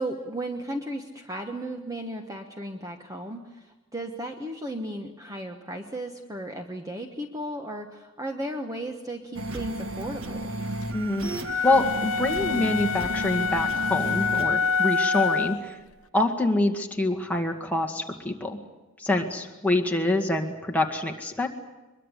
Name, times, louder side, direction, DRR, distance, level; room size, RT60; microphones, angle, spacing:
voice 1, 0.0-10.5, right 1 dB, 15° right, 4 dB, 1.2 m, -35 dB
sound 1, 9.3-14.5, right 2 dB, 70° right, 1.6 m, -33 dB
voice 2, 10.9-11.3 11.6-15.8 16.1-18.6 19.0-21.5, left 2 dB, 5° left, 2 dB, 2.0 m, -26 dB
sound 2, 11.4-15.7, left 5 dB, 80° left, 1.0 m, -26 dB
23.0 x 22.5 x 8.4 m, 1.1 s
head